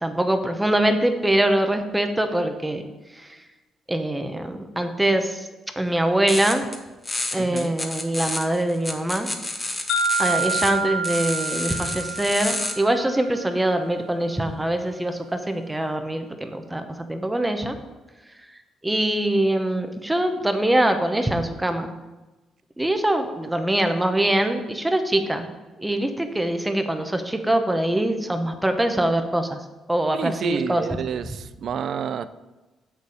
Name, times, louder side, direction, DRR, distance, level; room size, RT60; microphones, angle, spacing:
voice 1, 0.0-2.8 3.2-3.4 3.9-5.5 5.8-6.6 7.3-9.3 10.2-17.8 18.8-21.9 22.8-25.5 25.8-29.6 29.9-30.8, right 1 dB, 10° right, 6 dB, 1.0 m, -23 dB
sound 1, 6.3-6.8 7.0-10.7 11.0-12.7, left 2 dB, 20° left, 1.2 m, -30 dB
voice 2, 7.4-7.7 30.1-32.3, right 7 dB, 65° right, 13 dB, 0.5 m, -29 dB
sound 2, 9.9-13.9, right 3 dB, 90° left, 1.0 m, -28 dB
7.9 x 6.9 x 5.0 m, 1.1 s
cardioid pair, 90°, 0 cm